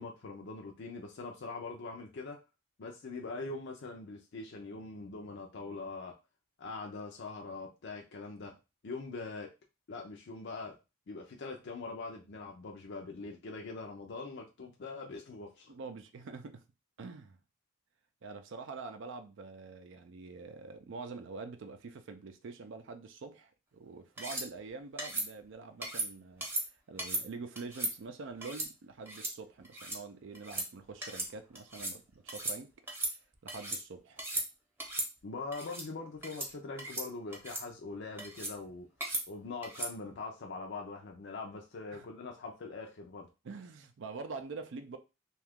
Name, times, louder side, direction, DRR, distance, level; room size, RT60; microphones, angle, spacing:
voice 1, 0.0-2.4 2.8-6.1 6.6-8.5 8.8-9.5 9.9-10.7 11.1-15.7 35.2-38.9 39.3-43.3, left 3 dB, 60° left, 0.5 m, -42 dB
voice 2, 15.7-16.6 17.0-17.4 18.2-32.7 33.4-34.2 41.9-42.1 43.4-45.0, right 4 dB, 65° right, 0.4 m, -45 dB
sound 1, 24.2-24.5 25.0-25.3 25.8-26.1 26.4-26.6 27.0-27.2 27.6-27.9 28.4-28.7 29.1-29.3 29.6-30.0 30.3-30.7 31.0-31.3 31.5-32.0 32.3-32.6 32.9-33.8 34.2-34.5 34.8-35.1 35.5-35.9 36.2-36.5 36.8-37.1 37.3-37.6 38.2-38.5 39.0-39.2 39.6-39.9, right 2 dB, 10° right, 0.7 m, -36 dB
2.8 x 2.4 x 3.4 m
head